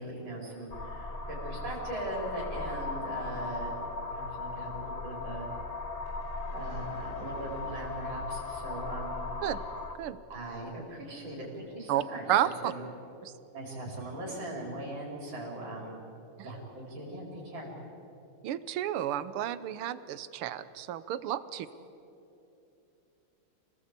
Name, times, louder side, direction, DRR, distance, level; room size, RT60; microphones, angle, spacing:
voice 1, 0.0-3.8 4.0-5.5 6.5-9.2 10.3-12.9 13.5-16.0 16.4-17.7, right 1 dB, 60° right, -3 dB, 5.4 m, -40 dB
sound 1, 0.7-9.9, left 3 dB, 35° left, 0.6 m, -38 dB
voice 2, 12.3-12.7 13.2-13.3 16.4-16.5 18.4-21.7, right 11 dB, 80° right, 15 dB, 1.7 m, -31 dB
26.5 x 19.0 x 8.2 m, 2.9 s
omnidirectional pair, 2.4 m